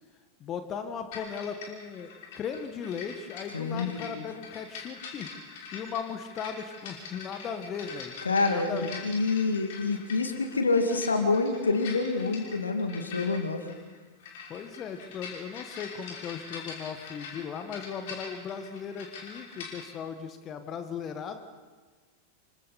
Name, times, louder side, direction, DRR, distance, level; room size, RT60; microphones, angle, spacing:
voice 1, 0.4-5.3 5.7-8.1 8.5-9.0 14.5-21.4, left 7 dB, 30° left, 8 dB, 1.6 m, -37 dB
sound 1, 1.1-19.9, left 5 dB, 50° left, 5.7 m, -44 dB
voice 2, 3.5-4.2 8.3-13.7, left 3 dB, 75° left, 5 dB, 2.3 m, -27 dB
27.5 x 25.0 x 4.3 m, 1.4 s
figure-of-eight pair, 90°, 0 cm